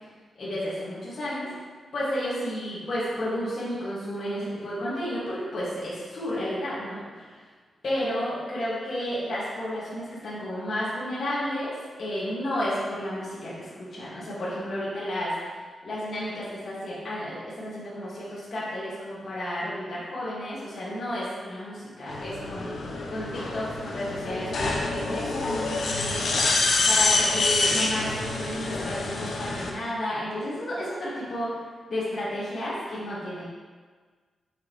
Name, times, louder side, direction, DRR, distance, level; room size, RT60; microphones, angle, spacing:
voice 1, 0.4-1.5 1.9-7.3 7.8-15.3 15.8-22.7 23.1-31.6 31.9-33.4, equal, 45° left, -10 dB, 2.1 m, -32 dB
sound 1, 22.1-29.7, left 3 dB, 60° left, 1.0 m, -26 dB
8.1 x 6.5 x 3.2 m, 1.5 s
wide cardioid pair, 175°, 0 cm